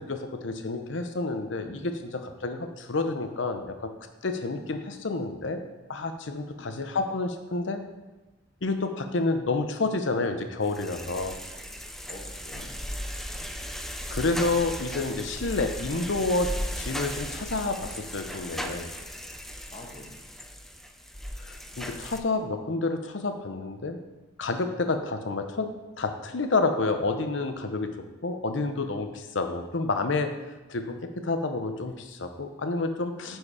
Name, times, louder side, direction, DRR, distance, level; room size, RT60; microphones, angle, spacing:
voice 1, 0.0-3.9 4.2-5.6 5.9-7.8 8.6-11.3 14.1-18.9 21.4-24.0 24.4-27.9 28.2-30.3 30.7-33.4, left 3 dB, 70° left, 7 dB, 0.8 m, -29 dB
voice 2, 6.6-7.0 12.1-12.8 13.3-13.6 19.7-20.2 33.3-33.4, left 2 dB, 35° left, 0 dB, 1.3 m, -46 dB
sound 1, 10.6-22.2, equal, ahead, 0.4 m, -37 dB
9.9 x 4.6 x 4.9 m, 1.1 s
head